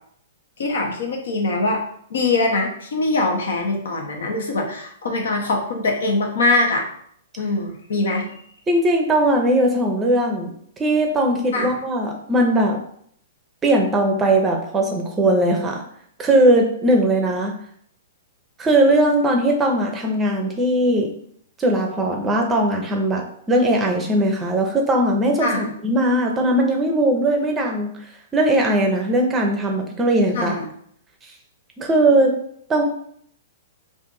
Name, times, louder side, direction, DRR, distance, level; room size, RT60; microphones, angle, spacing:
voice 1, 0.6-1.8 2.1-6.9 7.4-8.4 11.5-11.7 25.4-25.7 30.3-30.7, left 2 dB, 70° left, 1 dB, 0.8 m, -22 dB
voice 2, 8.7-10.5 10.8-12.8 13.6-15.8 16.2-17.5 18.6-21.1 21.6-27.9 28.3-30.6 31.8-32.3 32.7-32.8, right 1 dB, 20° right, 2 dB, 0.6 m, -19 dB
2.6 x 2.5 x 3.8 m, 0.66 s
hypercardioid pair, 115°, 0 cm